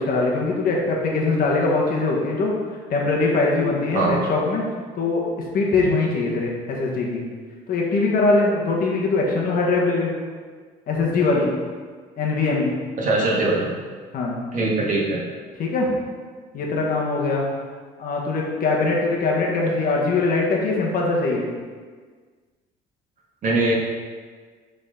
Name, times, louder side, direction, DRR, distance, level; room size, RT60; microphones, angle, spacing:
voice 1, 0.0-2.5 2.9-4.6 5.0-5.2 5.5-7.2 7.7-10.1 10.9-11.5 12.2-12.7 14.1-14.4 15.6-15.9 16.5-17.4 18.0-21.4, left 3 dB, 60° left, -2 dB, 1.5 m, -22 dB
voice 2, 13.0-13.7 14.5-15.2 23.4-23.7, right 2 dB, 50° right, -3 dB, 1.8 m, -21 dB
6.9 x 4.2 x 3.9 m, 1.5 s
cardioid pair, 110°, 17 cm